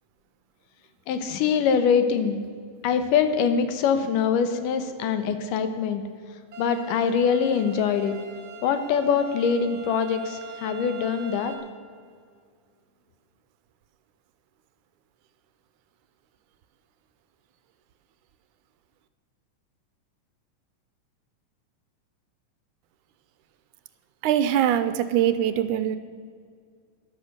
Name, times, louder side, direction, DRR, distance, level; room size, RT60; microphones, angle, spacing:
voice 1, 1.1-2.4 2.8-6.0 6.6-8.2 8.6-11.5, left 6 dB, 85° left, 9 dB, 2.6 m, -23 dB
sound 1, 6.5-11.5, right 4 dB, 40° right, 1.8 m, -42 dB
voice 2, 24.2-26.0, right 10 dB, 80° right, 12 dB, 2.0 m, -22 dB
13.5 x 11.5 x 6.6 m, 2.1 s
omnidirectional pair, 3.7 m